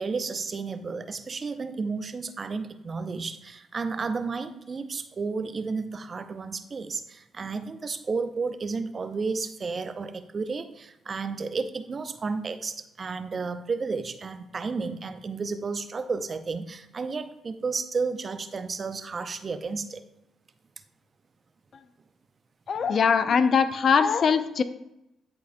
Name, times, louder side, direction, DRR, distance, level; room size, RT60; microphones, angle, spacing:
voice 1, 0.0-20.0, right 4 dB, 45° right, 10 dB, 0.6 m, -32 dB
voice 2, 22.7-24.6, left 6 dB, 55° left, 11 dB, 0.5 m, -21 dB
10.5 x 4.6 x 2.2 m, 0.85 s
hypercardioid pair, 45°, 0 cm